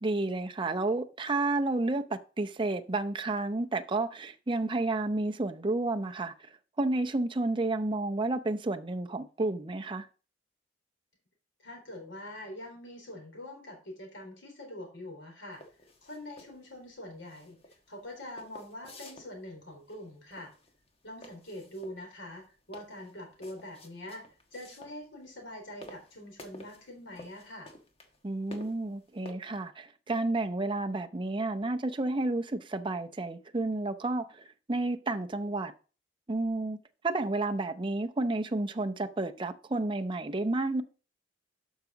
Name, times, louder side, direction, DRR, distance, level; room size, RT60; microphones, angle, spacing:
voice 1, 0.0-6.3 6.8-10.1 28.2-35.7 36.3-36.8 37.0-40.8, right 2 dB, 25° right, 0.6 m, -31 dB
voice 2, 11.6-15.6 16.0-17.6 17.9-20.5 21.0-24.2 24.5-27.7, left 1 dB, 85° left, 4.1 m, -44 dB
sound 1, 15.5-29.3, left 1 dB, 35° left, 1.3 m, -52 dB
12.0 x 5.8 x 4.0 m
head